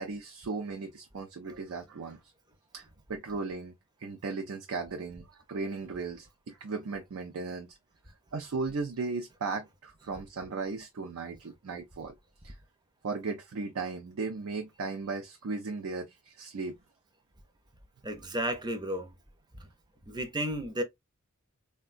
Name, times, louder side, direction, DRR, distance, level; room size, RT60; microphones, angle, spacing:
voice 1, 0.0-2.2 2.7-3.7 4.0-7.8 8.3-12.1 12.4-12.6 13.0-16.8, right 4 dB, 75° right, 0.5 m, -36 dB
voice 2, 18.0-19.1 19.5-19.7 20.1-20.8, right 1 dB, 20° right, 0.5 m, -33 dB
3.6 x 2.2 x 2.3 m
head